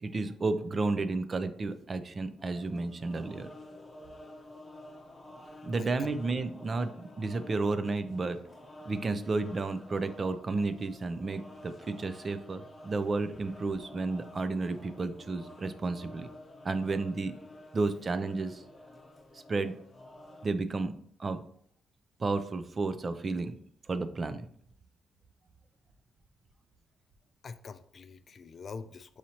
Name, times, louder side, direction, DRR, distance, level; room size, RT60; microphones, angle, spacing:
voice 1, 0.0-3.5 5.6-6.9 7.2-8.4 8.9-16.3 16.6-17.3 17.7-18.6 19.5-19.7 20.4-20.9 21.2-21.4 22.2-23.5 23.9-24.5, right 3 dB, 35° right, 11 dB, 0.4 m, -32 dB
sound 1, 2.4-20.5, left 1 dB, 20° left, 0.8 m, -50 dB
voice 2, 5.8-6.1 27.4-29.2, left 5 dB, 45° left, 12 dB, 0.3 m, -45 dB
6.2 x 2.8 x 2.8 m, 0.64 s
cardioid pair, 90°, 0 cm